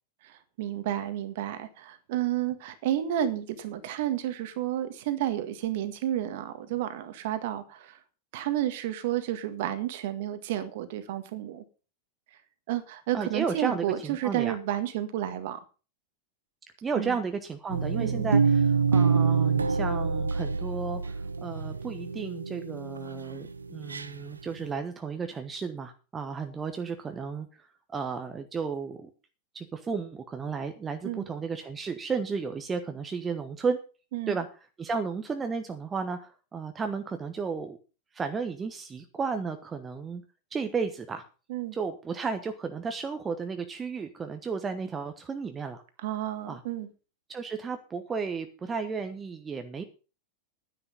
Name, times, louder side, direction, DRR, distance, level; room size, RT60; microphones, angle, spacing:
voice 1, 0.2-8.0 8.3-11.6 12.7-15.6 16.9-17.2 18.0-18.3 31.0-31.3 34.1-34.4 41.5-41.7 46.0-46.9, right 12 dB, 50° right, 11 dB, 1.7 m, -31 dB
voice 2, 13.1-14.6 16.8-27.5 27.9-29.1 29.5-33.8 34.3-34.5 34.8-37.8 38.1-40.2 40.5-41.2 41.7-45.8 46.5-46.6 47.3-49.8, right 5 dB, 20° right, 7 dB, 1.1 m, -33 dB
sound 1, 17.7-24.1 24.6-24.7, right 5 dB, 75° right, 0.7 m, -26 dB
10.5 x 9.8 x 5.5 m, 0.35 s
figure-of-eight pair, 90°, 0 cm